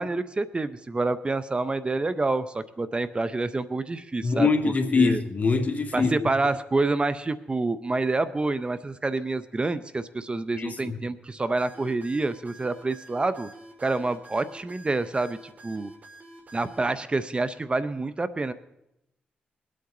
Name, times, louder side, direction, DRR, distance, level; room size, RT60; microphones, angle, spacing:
voice 1, 0.0-4.5 4.9-5.2 5.9-13.5 13.8-15.9 16.5-18.5, right 3 dB, 30° right, 14 dB, 0.7 m, -27 dB
voice 2, 4.2-6.3 10.6-11.0, left 4 dB, 45° left, 5 dB, 1.9 m, -24 dB
sound 1, 11.6-16.8, right 2 dB, 50° right, 3.4 m, -48 dB
22.0 x 8.6 x 3.8 m, 0.87 s
cardioid pair, 60°, 4 cm